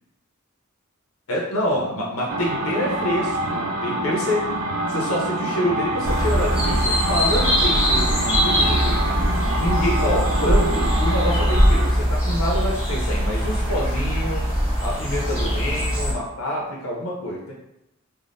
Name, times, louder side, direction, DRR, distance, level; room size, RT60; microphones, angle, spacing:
voice 1, 1.3-4.5 4.9-14.5 14.8-17.5, equal, 90° left, -2 dB, 0.6 m, -27 dB
sound 1, 2.3-11.9, right 1 dB, 70° right, 0.3 m, -26 dB
sound 2, 6.0-16.1, equal, 5° right, 1.1 m, -21 dB
3.4 x 2.2 x 2.5 m, 0.86 s
head